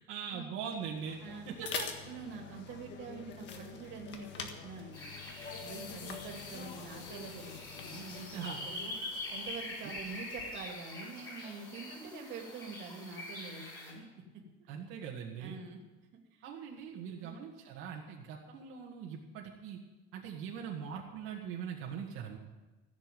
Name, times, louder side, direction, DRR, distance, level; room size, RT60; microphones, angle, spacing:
voice 1, 0.1-1.2 1.5-1.9 8.3-8.7 9.8-9.9 14.7-15.6 16.4-19.8 20.1-22.4, right 7 dB, 85° right, -2 dB, 1.9 m, -41 dB
sound 1, 0.8-10.7, left 6 dB, 60° left, 1.6 m, -46 dB
voice 2, 2.0-5.0 5.6-8.9 9.3-14.7 15.4-15.8 16.3-16.5 17.2-17.4, right 4 dB, 65° right, 2 dB, 2.5 m, -46 dB
sound 2, 4.9-13.9, left 2 dB, 20° left, 4.9 m, -44 dB
15.5 x 7.3 x 9.3 m, 1.1 s
cardioid pair, 165°, 21 cm